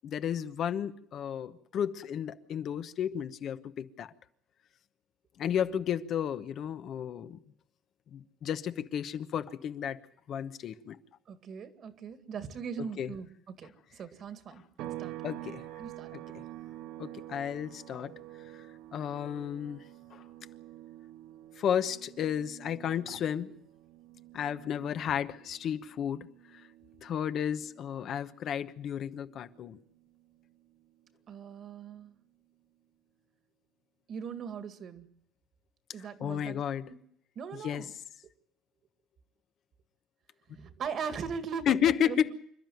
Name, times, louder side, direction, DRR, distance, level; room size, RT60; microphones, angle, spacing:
voice 1, 0.0-4.1 5.4-7.4 8.1-10.0 10.3-11.0 12.8-13.1 15.2-15.6 16.3-16.4 17.0-18.1 18.5-18.6 18.9-19.8 20.1-20.2 21.6-23.5 24.3-26.7 27.0-29.8 36.0-36.9 37.6-37.8 41.7-42.3, left 9 dB, 45° left, 1.0 m, -33 dB
voice 2, 11.3-15.2 15.8-16.1 31.3-32.1 34.1-35.1 35.9-36.6 36.9-37.0 37.4-37.9 40.5-42.3, right 6 dB, 40° right, 2.1 m, -40 dB
sound 1, 14.8-28.3 28.7-30.9, right 15 dB, 75° right, 1.5 m, -48 dB
27.5 x 12.5 x 9.3 m
cardioid pair, 155°, 0 cm